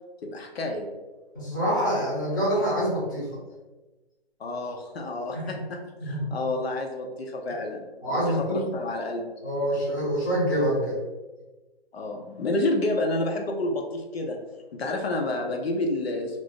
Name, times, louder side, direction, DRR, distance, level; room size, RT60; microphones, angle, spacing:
voice 1, 0.2-0.9 4.4-9.2 11.9-14.4 14.7-16.4, left 2 dB, 70° left, 2 dB, 0.7 m, -29 dB
voice 2, 1.3-3.3 5.3-5.5 6.0-6.3 8.0-8.6 9.4-11.0, equal, 20° left, -7 dB, 0.6 m, -26 dB
2.5 x 2.5 x 3.5 m, 1.2 s
hypercardioid pair, 165°, 32 cm